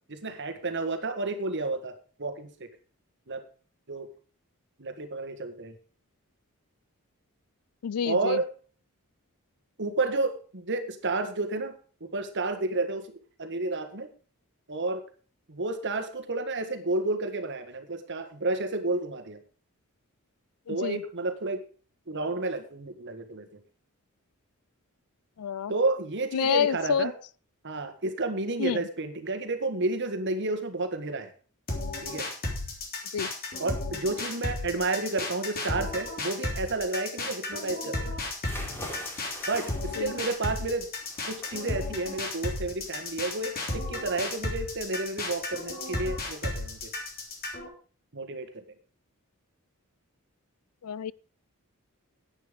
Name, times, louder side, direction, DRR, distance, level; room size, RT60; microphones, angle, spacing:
voice 1, 0.1-2.7 3.3-3.4 3.9-4.1 4.8-5.8 8.0-8.5 9.8-11.7 12.0-14.1 14.7-15.0 15.5-19.4 20.7-21.6 22.1-23.5 25.7-27.1 27.6-31.3 32.0-32.3 33.6-38.1 39.5-40.9 41.3-46.9 48.1-48.6, right 2 dB, 55° right, 1.6 m, -31 dB
voice 2, 7.8-8.4 20.7-21.0 25.4-25.7 26.3-27.1 28.6-28.9 33.1-33.3 40.0-40.1 50.8-51.1, left 7 dB, 90° left, 0.4 m, -28 dB
sound 1, 31.7-47.7, left 2 dB, 45° left, 3.3 m, -33 dB
sound 2, 38.3-47.6, equal, 10° left, 4.0 m, -46 dB
10.5 x 9.1 x 5.1 m
head